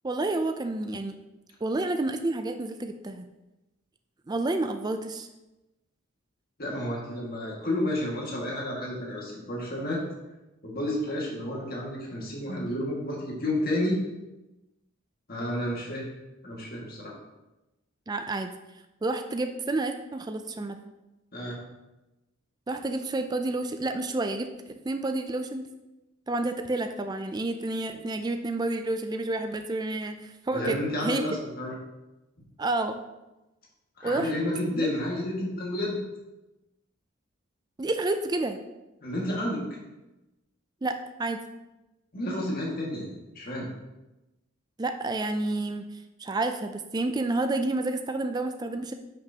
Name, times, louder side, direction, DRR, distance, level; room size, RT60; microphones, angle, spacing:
voice 1, 0.0-1.1 1.6-3.3 4.3-5.3 18.1-18.5 19.0-20.8 22.7-25.7 26.3-31.2 32.6-33.0 34.0-34.3 34.8-34.9 37.8-38.6 40.8-41.4 44.8-45.9 46.2-48.9, right 2 dB, 20° right, 6 dB, 0.4 m, -29 dB
voice 2, 6.6-10.0 10.6-14.0 15.3-16.0 16.4-17.1 21.3-21.6 30.5-31.7 34.0-36.0 39.0-39.6 42.1-43.1 43.4-43.7, left 1 dB, 45° left, -2 dB, 1.9 m, -31 dB
9.9 x 6.0 x 2.9 m, 1.0 s
head